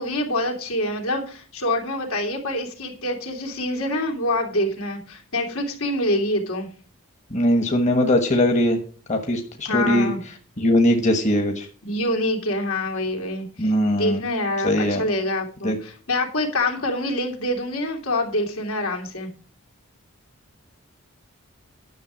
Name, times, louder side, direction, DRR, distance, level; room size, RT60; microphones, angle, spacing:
voice 1, 0.0-6.7 9.6-10.2 11.8-19.3, left 1 dB, 85° left, 2 dB, 3.0 m, -26 dB
voice 2, 7.3-8.8 9.1-10.1 10.6-11.7 13.6-14.2 14.6-15.0 15.6-15.8, left 1 dB, 35° left, 4 dB, 1.3 m, -20 dB
11.0 x 6.6 x 6.2 m, 0.41 s
head